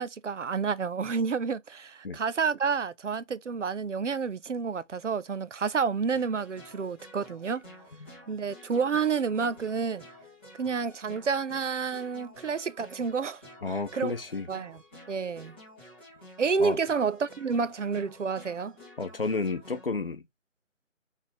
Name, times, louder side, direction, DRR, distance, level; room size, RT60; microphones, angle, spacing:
voice 1, 0.0-7.6 8.3-10.0 10.6-13.4 13.7-14.1 14.5-14.8 15.1-15.6 16.4-18.8, right 5 dB, 65° right, 0.6 m, -29 dB
sound 1, 6.1-19.9, left 1 dB, 10° left, 1.0 m, -51 dB
voice 2, 13.6-14.5 16.6-16.8 19.0-20.2, left 3 dB, 45° left, 0.7 m, -31 dB
4.1 x 3.5 x 3.0 m
figure-of-eight pair, 165°, 39 cm